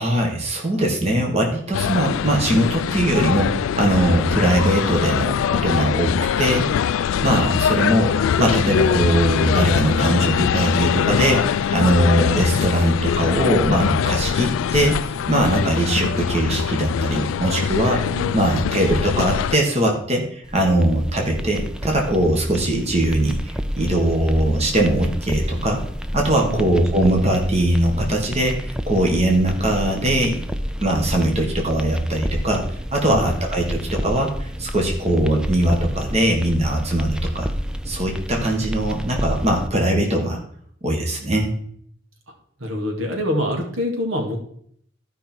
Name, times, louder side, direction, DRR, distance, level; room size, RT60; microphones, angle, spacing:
voice 1, 0.0-6.8 7.2-18.0 18.3-23.4 23.8-25.8 26.1-30.4 30.8-37.5 37.9-40.4 40.8-41.5, right 1 dB, 35° right, 1 dB, 1.6 m, -20 dB
sound 1, 1.7-19.6, left 8 dB, 80° left, 0.3 m, -23 dB
voice 2, 18.1-18.6 26.5-26.9 33.1-33.3 42.6-44.4, left 1 dB, 90° right, 2 dB, 2.1 m, -26 dB
sound 2, 20.4-39.7, equal, 5° right, 0.4 m, -30 dB
13.0 x 5.4 x 4.5 m, 0.63 s
head